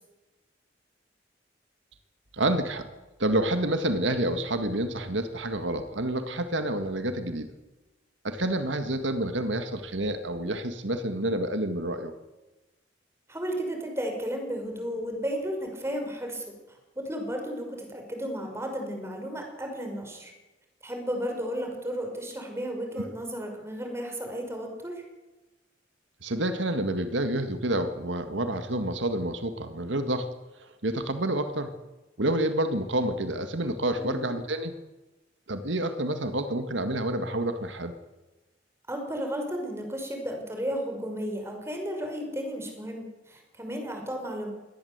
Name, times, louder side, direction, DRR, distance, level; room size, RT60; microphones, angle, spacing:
voice 1, 2.3-2.8 3.2-7.5 8.2-12.1 26.2-30.3 30.6-31.7 32.2-34.8 35.5-37.9, right 1 dB, 85° right, 8 dB, 1.9 m, -28 dB
voice 2, 13.3-20.3 20.8-25.0 34.0-34.2 38.9-44.5, equal, 15° right, 3 dB, 5.8 m, -33 dB
23.0 x 18.5 x 8.1 m, 1.1 s
head